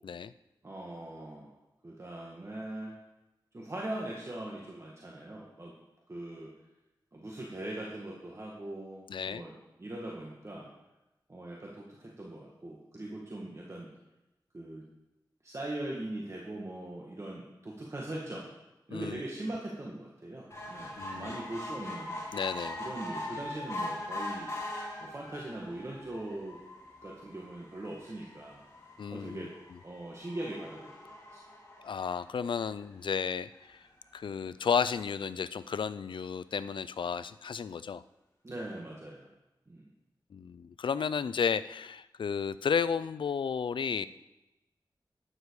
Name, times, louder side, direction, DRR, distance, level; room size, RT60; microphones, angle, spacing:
voice 1, 0.6-1.5 1.8-2.9 3.5-5.8 6.1-6.5 7.1-10.7 11.3-13.9 14.5-14.8 15.4-18.5 18.9-22.2 22.8-24.5 25.0-26.6 27.0-28.6 29.1-29.5 29.8-31.0 31.3-31.4 38.4-39.3 39.7-39.9, right 1 dB, 35° right, -3 dB, 1.9 m, -41 dB
voice 2, 9.1-9.4 18.9-19.2 21.0-21.4 22.3-22.8 29.0-29.5 31.8-33.8 34.1-38.0 40.3-44.1, left 6 dB, 90° left, 16 dB, 0.4 m, -33 dB
sound 1, 20.5-33.1 33.7-33.8 34.1-34.2 34.4-34.5, left 1 dB, 35° left, 3.8 m, -42 dB
12.0 x 9.8 x 4.8 m, 0.97 s
wide cardioid pair, 85°, 8 cm